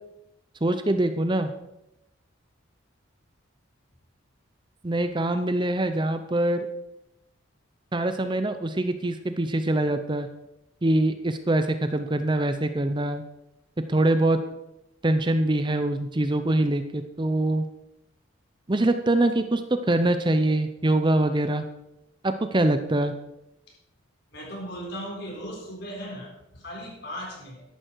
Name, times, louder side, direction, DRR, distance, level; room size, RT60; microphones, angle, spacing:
voice 1, 0.6-1.5 4.8-6.7 7.9-10.3 10.8-13.2 13.9-14.4 15.0-17.6 18.7-21.6 22.2-23.1, right 1 dB, 20° right, 9 dB, 0.6 m, -24 dB
voice 2, 24.3-27.6, equal, 50° left, -1 dB, 4.4 m, -37 dB
13.5 x 11.0 x 4.6 m, 0.89 s
head